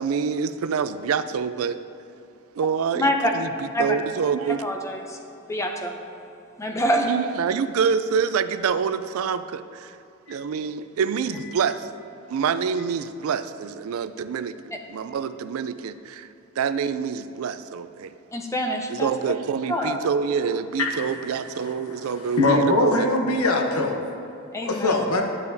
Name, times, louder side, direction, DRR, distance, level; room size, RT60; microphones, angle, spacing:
voice 1, 0.0-1.8 2.6-4.6 7.0-10.0 10.3-11.9 12.3-14.6 14.9-16.3 16.6-18.1 18.9-23.1, right 6 dB, 70° right, 12 dB, 0.4 m, -26 dB
voice 2, 3.0-3.3 3.7-4.0 4.6-5.2 5.5-5.9 6.6-7.1 10.3-10.4 18.3-19.1 19.7-20.0 24.5-25.0, equal, 15° left, 2 dB, 0.6 m, -25 dB
voice 3, 20.8-21.1 21.6-24.0 24.6-25.2, left 2 dB, 85° left, 2 dB, 1.0 m, -23 dB
10.5 x 8.6 x 2.7 m, 2.7 s
head